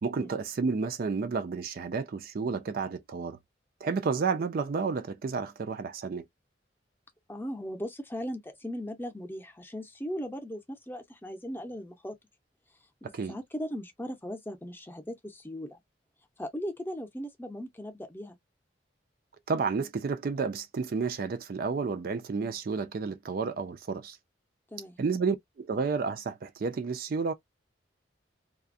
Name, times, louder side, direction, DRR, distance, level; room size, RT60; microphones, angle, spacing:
voice 1, 0.0-3.4 3.8-6.3 13.1-13.4 19.5-24.2 25.0-27.3, right 4 dB, 55° right, 0.4 m, -31 dB
voice 2, 7.3-12.1 13.0-15.8 16.4-18.4 24.7-25.0, equal, 10° left, 0.6 m, -38 dB
2.3 x 2.1 x 2.5 m
head